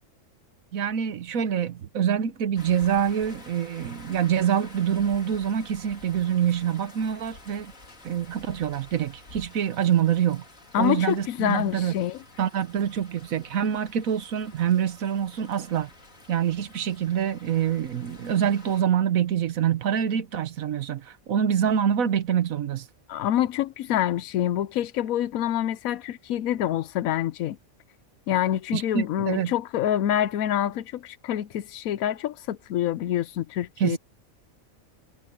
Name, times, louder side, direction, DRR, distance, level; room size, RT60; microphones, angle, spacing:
voice 1, 0.7-7.7 8.0-10.4 10.8-11.9 12.4-15.9 16.3-22.9 28.7-29.5 33.8-34.0, right 9 dB, 80° right, 1.4 m, -25 dB
sound 1, 2.6-18.8, left 2 dB, 70° left, 4.3 m, -49 dB
voice 2, 10.7-12.2 23.1-27.6 28.3-34.0, left 11 dB, 85° left, 1.1 m, -26 dB
omnidirectional pair, 1.4 m